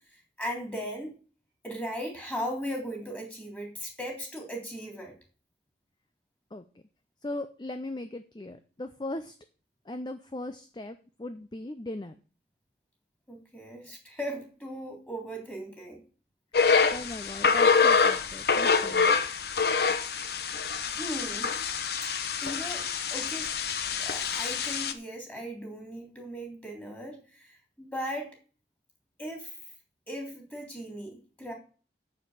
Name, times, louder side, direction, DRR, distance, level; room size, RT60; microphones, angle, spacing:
voice 1, 0.4-1.1 1.6-5.1 13.3-16.0 20.9-21.7 22.4-23.5 24.0-28.3 29.2-29.6 30.1-31.5, equal, 10° left, 0 dB, 3.4 m, -38 dB
voice 2, 7.2-9.3 9.9-12.1 16.9-19.1, left 2 dB, 25° left, 10 dB, 0.5 m, -38 dB
sound 1, 16.5-24.9, left 5 dB, 60° left, 0.9 m, -26 dB
7.3 x 6.9 x 8.0 m, 0.39 s
head